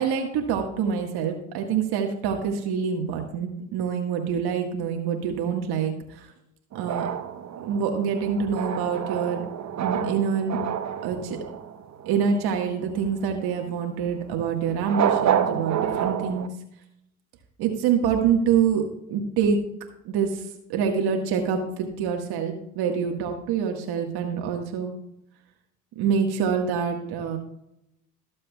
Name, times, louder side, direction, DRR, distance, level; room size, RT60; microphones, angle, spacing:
voice 1, 0.0-6.3 6.7-7.1 7.6-9.5 9.8-10.6 11.0-11.4 12.1-16.5 17.6-18.8 19.1-19.6 20.1-20.4 20.7-24.9 26.0-27.4, right 7 dB, 60° right, 2 dB, 1.8 m, -26 dB
sound 1, 6.7-12.5 14.8-16.5, right 9 dB, 40° right, 1.1 m, -28 dB
22.0 x 7.5 x 2.4 m, 0.81 s
hypercardioid pair, 65°, 42 cm